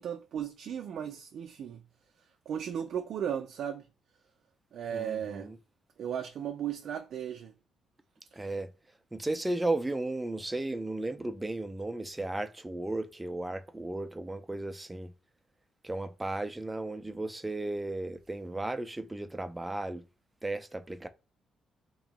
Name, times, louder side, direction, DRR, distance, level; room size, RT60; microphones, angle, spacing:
voice 1, 0.0-1.8 2.5-3.9 4.7-5.5 6.0-7.5, right 9 dB, 65° right, 0.4 m, -36 dB
voice 2, 4.9-5.6 8.3-8.7 9.1-15.1 15.8-20.0 20.4-21.1, right 2 dB, 15° right, 0.5 m, -35 dB
3.0 x 2.7 x 4.0 m
cardioid pair, 90°, 0 cm